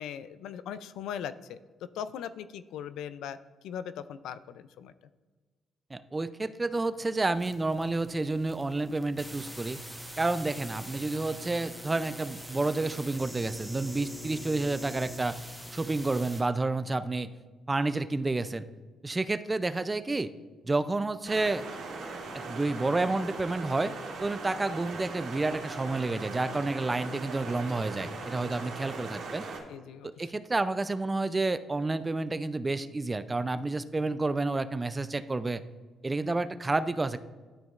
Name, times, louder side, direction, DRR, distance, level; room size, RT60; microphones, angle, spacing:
voice 1, 0.0-3.4 3.6-4.9 29.7-30.2, left 9 dB, 85° left, 14 dB, 0.3 m, -39 dB
voice 2, 5.9-9.8 10.2-15.4 15.7-17.3 17.7-18.7 19.0-20.3 20.6-21.7 22.3-23.9 24.2-29.4 30.0-35.6 36.0-37.2, right 2 dB, 20° right, 13 dB, 0.4 m, -30 dB
sound 1, 7.3-16.4, equal, ahead, 1.1 m, -43 dB
sound 2, 21.2-29.6, right 3 dB, 85° right, 2.3 m, -40 dB
12.5 x 5.1 x 2.4 m, 1.4 s
cardioid pair, 90°, 0 cm